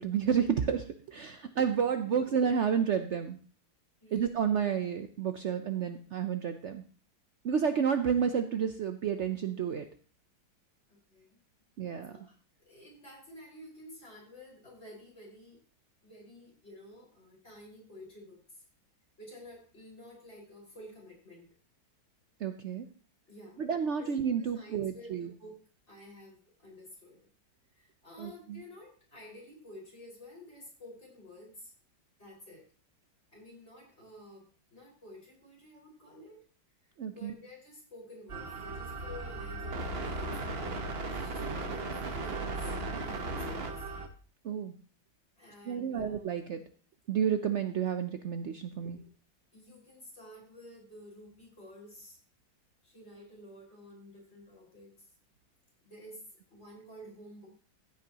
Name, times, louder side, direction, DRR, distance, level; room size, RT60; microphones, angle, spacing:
voice 1, 0.0-3.4 4.1-6.8 7.4-9.8 11.8-12.1 22.4-22.9 23.6-25.3 28.2-28.6 37.0-37.3 44.4-44.8 45.7-46.6 47.1-49.0, right 7 dB, 85° right, 8 dB, 0.6 m, -30 dB
voice 2, 4.0-4.4 7.6-7.8 10.9-11.4 12.1-12.2 12.6-15.6 16.0-18.6 19.2-21.5 23.3-23.6 24.0-25.6 25.9-27.2 27.7-31.7 32.2-32.7 33.3-34.5 34.7-36.4 37.1-43.8 45.4-46.3 49.5-52.2 52.8-55.1 55.8-57.5, left 1 dB, 35° left, -4 dB, 5.3 m, -51 dB
sound 1, 38.3-44.1, right 2 dB, 40° right, 1.1 m, -36 dB
15.5 x 8.9 x 2.9 m, 0.40 s
omnidirectional pair, 2.1 m